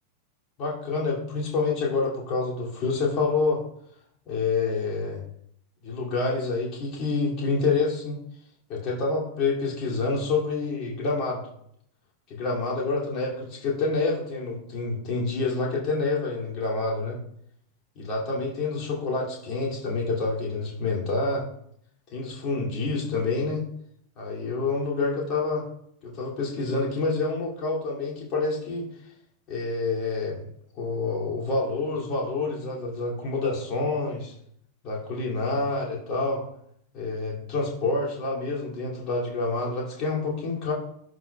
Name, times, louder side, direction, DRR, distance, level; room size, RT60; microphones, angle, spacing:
voice 1, 0.6-3.6 4.3-5.2 5.8-8.2 8.7-11.4 12.3-17.2 17.9-21.4 22.1-23.6 24.2-25.6 26.0-28.9 29.5-30.4 30.8-34.3 34.8-36.4 36.9-40.7, left 3 dB, 35° left, -4 dB, 2.5 m, -27 dB
11.0 x 5.2 x 2.3 m, 0.69 s
figure-of-eight pair, 90°, 0 cm